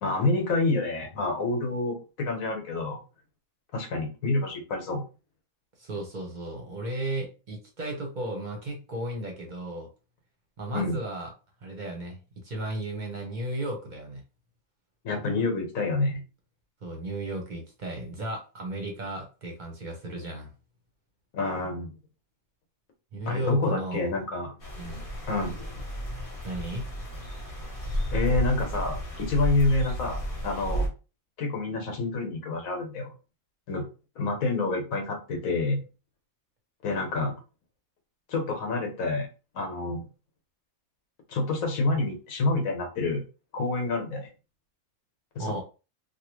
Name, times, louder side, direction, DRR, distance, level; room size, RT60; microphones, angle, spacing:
voice 1, 0.0-3.0 3.7-5.0 10.7-11.0 15.0-16.2 21.3-21.9 23.3-24.5 25.3-25.7 28.1-30.9 31.4-33.1 33.7-33.8 34.2-35.8 36.8-37.3 38.3-39.3 39.5-40.0 41.3-43.2 43.5-44.3 45.3-45.6, left 2 dB, 70° left, 3 dB, 1.3 m, -28 dB
voice 2, 5.8-9.9 10.6-11.3 11.6-12.2 12.4-14.2 16.8-20.5 23.1-24.1 24.8-25.1 26.4-26.9 45.4-45.6, right 1 dB, 40° right, 1 dB, 0.7 m, -34 dB
sound 1, 24.6-30.9, equal, 40° left, 1.1 m, -32 dB
2.9 x 2.4 x 3.0 m, 0.32 s
omnidirectional pair, 1.5 m